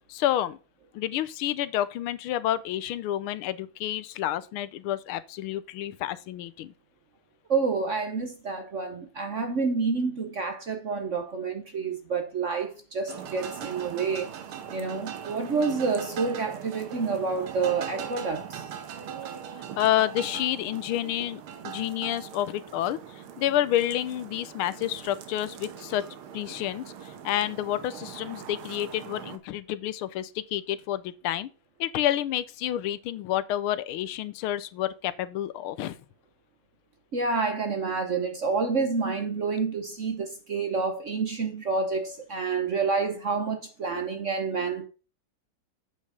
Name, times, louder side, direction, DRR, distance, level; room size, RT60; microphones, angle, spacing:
voice 1, 0.1-0.6 0.9-6.7 19.8-26.0 26.3-31.5 31.8-36.0, left 12 dB, 85° left, 1.5 m, -29 dB
voice 2, 7.5-14.3 14.7-18.6 37.1-44.9, right 4 dB, 50° right, 0.9 m, -28 dB
sound 1, 13.1-29.4, right 8 dB, 85° right, 1.9 m, -41 dB
8.5 x 5.3 x 4.9 m
omnidirectional pair, 2.3 m